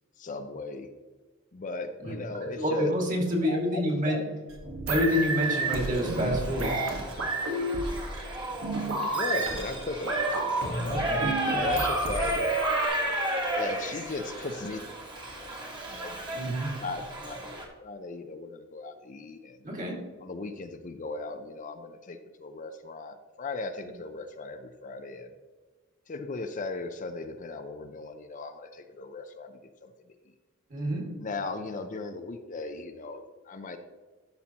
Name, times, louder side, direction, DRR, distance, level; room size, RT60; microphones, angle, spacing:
voice 1, 0.2-0.9 1.5-2.9 3.4-4.3 9.2-12.4 13.5-14.8 15.3-15.5 15.9-16.2 16.8-19.6 20.2-25.3 26.1-29.9 31.2-33.8, left 3 dB, 40° left, 7 dB, 0.5 m, -37 dB
voice 2, 2.6-4.2 4.9-6.8 10.8-11.3 16.3-16.7 19.6-20.0 30.7-31.1, equal, 40° right, 0 dB, 1.9 m, -28 dB
sound 1, 4.5-12.9, right 2 dB, 85° right, 1.5 m, -31 dB
Shout / Livestock farm animals working animals, 5.1-17.7, right 1 dB, 20° right, 1.4 m, -33 dB
13.0 x 5.6 x 2.9 m, 1.3 s
head